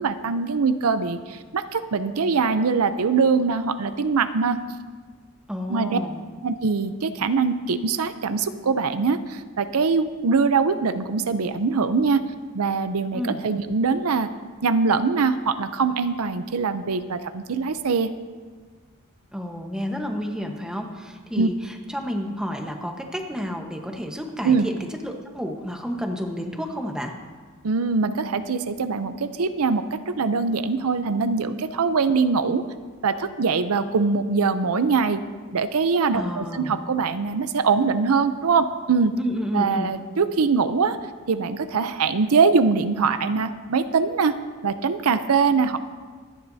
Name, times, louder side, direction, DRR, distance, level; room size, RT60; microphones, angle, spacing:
voice 1, 0.0-4.6 5.7-6.0 6.4-12.2 12.5-14.3 14.6-18.1 21.4-21.5 24.4-24.7 27.6-32.6 33.0-35.2 35.5-39.1 39.5-41.0 41.3-44.4 44.6-45.8, right 5 dB, 75° right, 10 dB, 0.6 m, -22 dB
voice 2, 5.5-6.2 13.1-13.4 19.3-27.1 36.1-36.8 39.2-39.9, equal, 5° right, 2 dB, 1.1 m, -30 dB
24.5 x 10.0 x 2.7 m, 1.5 s
head